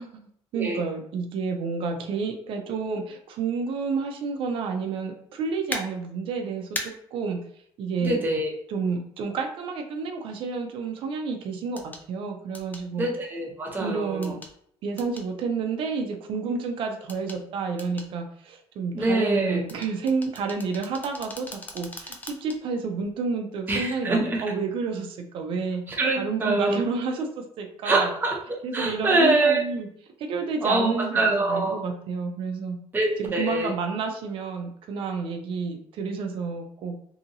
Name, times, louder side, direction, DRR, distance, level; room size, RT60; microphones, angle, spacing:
voice 1, 0.0-7.4 7.8-8.2 8.7-13.1 13.8-14.3 14.8-25.8 26.1-28.1 28.6-29.9 30.2-32.8 33.2-36.9, right 5 dB, 55° right, 3 dB, 0.4 m, -30 dB
sound 1, 5.7-5.8 6.7-6.9 8.9-9.0 11.8-12.0 12.5-12.8 14.2-14.5 15.0-15.3 17.1-17.4 17.8-18.1 19.7-22.6 23.0-23.1, left 2 dB, 15° left, 0.4 m, -37 dB
voice 2, 8.0-8.5 13.0-14.3 18.9-19.6 23.7-24.4 26.0-26.8 27.8-28.4 28.7-29.6 30.6-31.8 32.9-33.7, right 2 dB, 20° right, -1 dB, 0.7 m, -24 dB
2.7 x 2.6 x 2.6 m, 0.67 s
cardioid pair, 150°, 11 cm